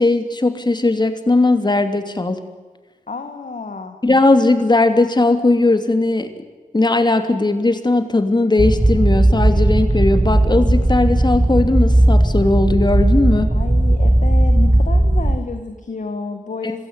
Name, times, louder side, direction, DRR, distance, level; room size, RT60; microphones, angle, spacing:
voice 1, 0.0-2.4 4.0-6.3 6.7-13.6, left 2 dB, 35° left, 8 dB, 2.9 m, -17 dB
voice 2, 3.1-4.0 13.5-16.9, left 4 dB, 70° left, 7 dB, 2.0 m, -30 dB
sound 1, 8.6-15.4, right 1 dB, 20° right, 1.6 m, -15 dB
26.0 x 16.5 x 9.9 m, 1.4 s
wide cardioid pair, 100°, 13 cm